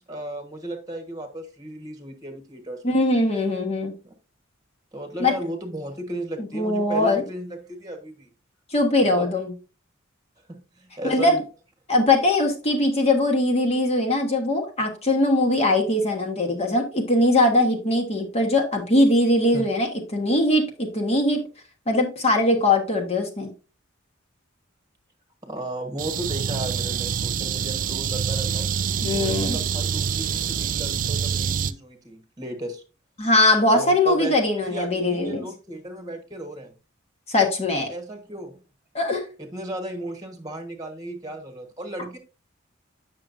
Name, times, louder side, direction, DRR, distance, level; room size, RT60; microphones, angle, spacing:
voice 1, 0.0-2.8 4.0-4.1 4.9-8.3 9.1-9.3 10.4-11.4 19.5-19.6 25.4-28.7 29.1-32.8 33.7-34.3 34.7-36.7 37.7-38.5 39.4-42.2, right 1 dB, 20° right, 6 dB, 1.3 m, -35 dB
voice 2, 2.8-3.9 5.2-5.4 6.5-7.2 8.7-9.5 11.0-11.4 11.9-21.4 21.9-23.5 29.0-29.6 33.2-35.4 37.3-37.9 38.9-39.2, left 1 dB, 30° left, 1 dB, 1.3 m, -21 dB
sound 1, 26.0-31.7, right 7 dB, 40° right, 0.4 m, -26 dB
8.7 x 6.3 x 2.6 m, 0.33 s
head